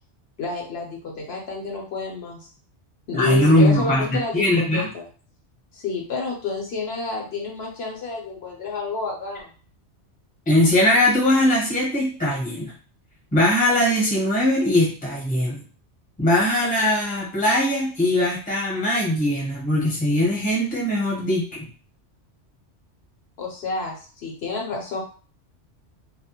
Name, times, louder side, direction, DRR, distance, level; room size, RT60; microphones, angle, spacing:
voice 1, 0.4-2.5 3.1-5.0 5.7-9.5 23.4-25.0, left 4 dB, 65° left, -2 dB, 0.8 m, -29 dB
voice 2, 3.1-4.9 10.5-12.7 13.3-15.6 16.2-21.7, left 1 dB, 10° left, -4 dB, 0.6 m, -20 dB
2.2 x 2.1 x 2.8 m, 0.40 s
omnidirectional pair, 1.2 m